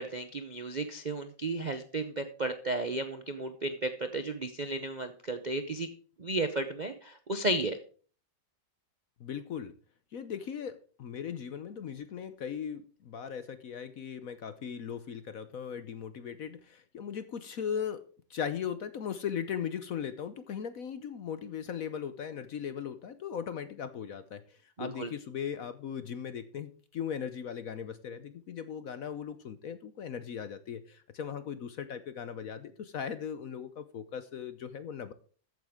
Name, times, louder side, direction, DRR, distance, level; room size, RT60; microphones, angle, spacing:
voice 1, 0.0-5.9 6.2-7.8 24.8-25.1, right 2 dB, 65° right, 9 dB, 0.4 m, -33 dB
voice 2, 9.2-9.7 10.1-18.0 18.3-35.1, left 8 dB, 60° left, 12 dB, 1.0 m, -38 dB
14.0 x 9.1 x 3.6 m, 0.42 s
omnidirectional pair, 2.1 m